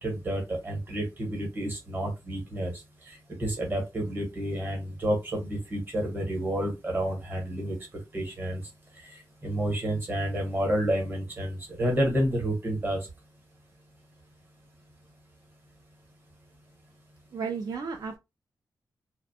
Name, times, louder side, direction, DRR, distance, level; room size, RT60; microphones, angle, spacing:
voice 1, 0.0-7.8 8.1-8.6 9.0-13.1, right 1 dB, 30° right, 1.0 m, -30 dB
voice 2, 17.3-18.2, right 5 dB, 60° right, 0.4 m, -33 dB
2.5 x 2.1 x 2.6 m
wide cardioid pair, 165°, 7 cm